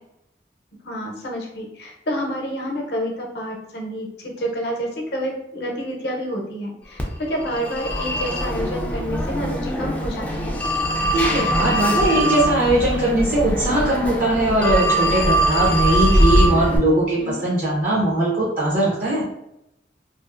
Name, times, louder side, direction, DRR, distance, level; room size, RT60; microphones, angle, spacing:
voice 1, 0.8-4.1 4.4-10.5 17.2-17.4, equal, 70° left, 0 dB, 0.6 m, -28 dB
Telephone, 7.0-16.8, equal, 10° left, 0.3 m, -22 dB
voice 2, 11.1-19.2, right 1 dB, 50° right, -5 dB, 0.6 m, -20 dB
2.5 x 2.4 x 2.4 m, 0.85 s
head